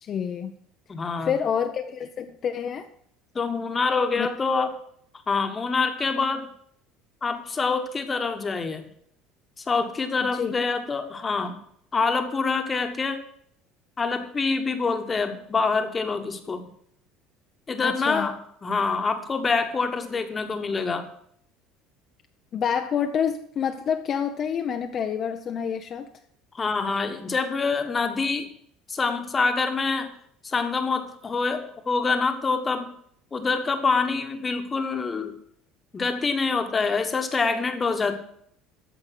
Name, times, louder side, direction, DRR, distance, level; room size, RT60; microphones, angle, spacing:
voice 1, 0.0-0.5 1.2-2.9 4.2-4.3 10.3-10.5 17.8-18.3 22.5-26.1, left 8 dB, 35° left, 5 dB, 0.7 m, -28 dB
voice 2, 0.9-1.3 3.3-4.7 5.3-6.5 7.2-8.9 9.7-11.6 11.9-13.2 14.0-16.7 17.7-21.1 26.5-28.5 28.9-30.1 30.4-32.9 33.3-35.3 35.9-38.2, left 4 dB, 20° left, 7 dB, 1.3 m, -26 dB
14.0 x 5.3 x 7.7 m, 0.67 s
cardioid pair, 140°, 0 cm